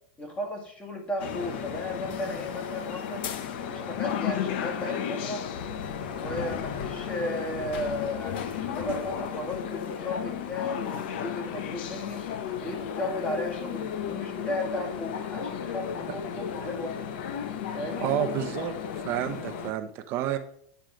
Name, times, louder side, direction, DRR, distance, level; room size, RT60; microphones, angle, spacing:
voice 1, 0.2-3.3 3.7-5.4 6.1-12.3 12.6-17.0 17.7-18.1, left 1 dB, 20° left, 2 dB, 2.1 m, -35 dB
sound 1, 1.2-19.7, left 8 dB, 70° left, 0.9 m, -34 dB
voice 2, 18.0-18.8 19.0-20.4, right 11 dB, 45° right, 7 dB, 0.7 m, -29 dB
9.2 x 4.7 x 5.1 m, 0.67 s
supercardioid pair, 125°, 6 cm